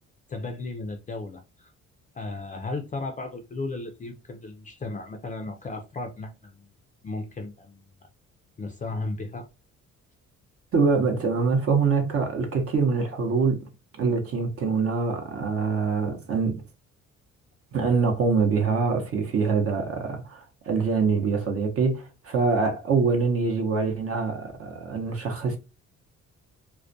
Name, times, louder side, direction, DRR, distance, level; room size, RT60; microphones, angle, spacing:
voice 1, 0.3-1.7 2.1-6.7 7.0-7.9 8.6-9.5, left 2 dB, 25° left, 0.4 m, -35 dB
voice 2, 10.7-13.7 14.0-16.6 17.7-25.6, right 4 dB, 50° right, 0.7 m, -24 dB
2.3 x 2.1 x 2.5 m
cardioid pair, 90°, 30 cm